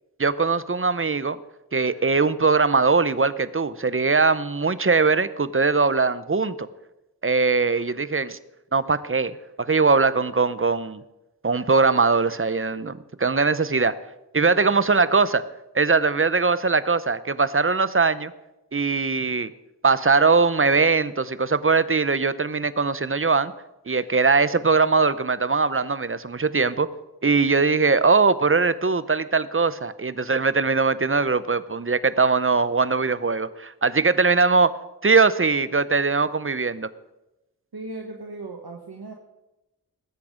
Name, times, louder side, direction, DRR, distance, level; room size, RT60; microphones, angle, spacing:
voice 1, 0.2-1.4 1.7-6.7 7.2-8.4 8.7-11.0 11.4-13.9 14.3-15.4 15.7-18.3 18.7-19.5 19.8-23.5 23.9-26.9 27.2-34.7 35.0-36.9, right 4 dB, 35° right, 15 dB, 0.7 m, -21 dB
voice 2, 14.4-15.2 37.7-39.1, right 3 dB, 85° right, 2 dB, 1.4 m, -38 dB
19.5 x 8.5 x 5.1 m, 0.98 s
wide cardioid pair, 40°, 37 cm